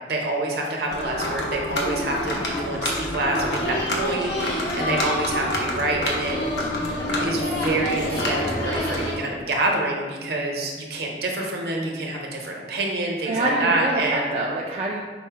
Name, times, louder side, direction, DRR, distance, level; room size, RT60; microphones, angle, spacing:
voice 1, 0.1-6.4 7.2-14.3, right 2 dB, 60° right, 0 dB, 0.8 m, -27 dB
sound 1, 0.9-9.2, left 1 dB, 70° left, 0.8 m, -26 dB
voice 2, 13.3-15.0, right 2 dB, 35° right, -3 dB, 0.3 m, -26 dB
5.2 x 2.1 x 4.6 m, 1.5 s
head